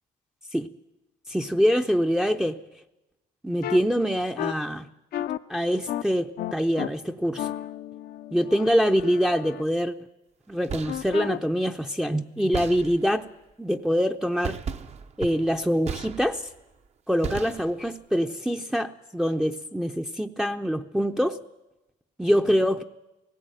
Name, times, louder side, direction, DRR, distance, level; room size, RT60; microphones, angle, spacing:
voice 1, 1.3-2.6 3.4-4.9 5.5-7.5 8.3-9.9 10.5-13.3 13.6-14.6 15.2-16.4 17.1-21.4 22.2-22.8, equal, 5° right, 0.6 m, -24 dB
sound 1, 3.6-3.8 4.4-4.5 5.1-5.4 5.9-6.0 6.4-6.9 7.4-9.6 10.9-11.4, left 12 dB, 65° left, 0.7 m, -33 dB
sound 2, 10.5-11.2 12.5-13.3 14.4-16.6 17.2-18.0, right 6 dB, 40° right, 0.8 m, -36 dB
17.5 x 16.5 x 9.1 m
cardioid pair, 110°, 17 cm